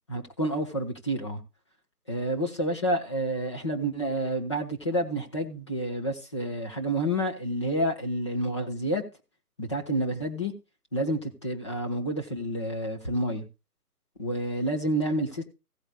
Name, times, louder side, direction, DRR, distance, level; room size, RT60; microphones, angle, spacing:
voice 1, 0.1-1.4 2.1-9.0 9.6-10.5 10.9-13.4 14.2-15.4, right 1 dB, 20° left, 1.2 m, -29 dB
16.5 x 8.7 x 2.3 m
figure-of-eight pair, 155°, 46 cm